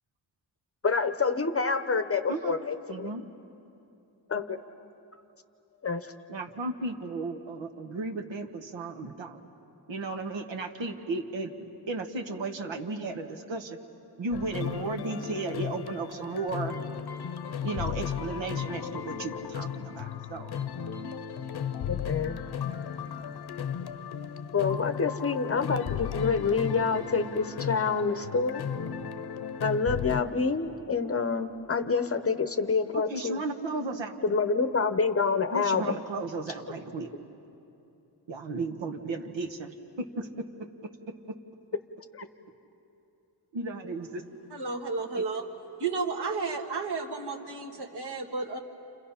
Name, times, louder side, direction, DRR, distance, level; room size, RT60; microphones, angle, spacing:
voice 1, 0.8-3.1 4.3-4.6 5.8-6.1 21.9-22.4 24.5-28.6 29.6-33.4 34.2-36.0 42.1-42.2, left 5 dB, 30° left, 10 dB, 0.7 m, -27 dB
voice 2, 2.9-3.2 6.3-9.4 9.9-11.5 11.9-13.8 14.2-16.8 17.6-20.6 31.0-31.1 32.9-34.2 35.5-37.1 38.3-39.7 40.2-40.3 43.5-44.2 45.1-45.2, right 3 dB, 90° right, 5 dB, 1.6 m, -34 dB
sound 1, 14.3-30.2, left 8 dB, 60° left, 0.7 m, -35 dB
voice 3, 44.5-45.4 45.8-48.6, right 4 dB, 60° right, 4 dB, 1.9 m, -32 dB
29.5 x 28.5 x 5.7 m, 2.8 s
wide cardioid pair, 170°, 44 cm